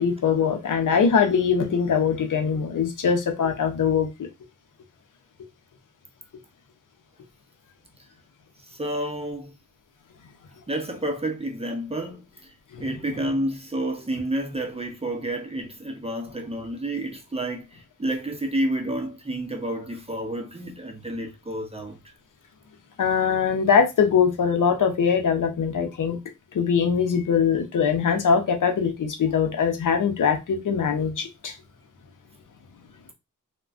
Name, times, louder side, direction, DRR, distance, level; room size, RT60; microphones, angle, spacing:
voice 1, 0.0-4.3 12.7-12.9 23.0-26.2 26.5-31.5, left 6 dB, 70° left, 0.6 m, -22 dB
voice 2, 8.7-9.5 10.7-12.5 12.8-22.0, right 1 dB, 20° right, 0.6 m, -30 dB
3.6 x 2.2 x 2.4 m
wide cardioid pair, 90°, 32 cm